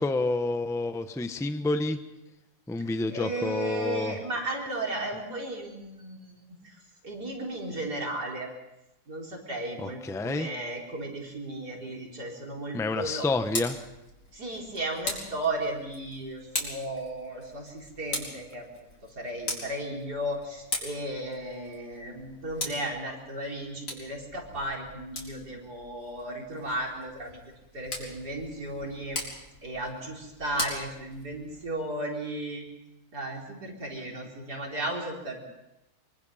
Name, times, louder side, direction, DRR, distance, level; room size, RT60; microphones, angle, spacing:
voice 1, 0.0-2.0 2.7-4.1 9.8-10.5 12.7-13.8, left 2 dB, 5° left, 8 dB, 0.4 m, -29 dB
voice 2, 3.1-6.8 7.0-8.5 9.1-13.3 14.3-27.4 27.7-29.2 29.6-32.6 33.1-35.4, right 1 dB, 45° right, -1 dB, 5.0 m, -35 dB
Tick, 13.2-31.7, left 2 dB, 50° left, 5.1 m, -40 dB
24.5 x 24.0 x 5.7 m, 0.95 s
omnidirectional pair, 2.3 m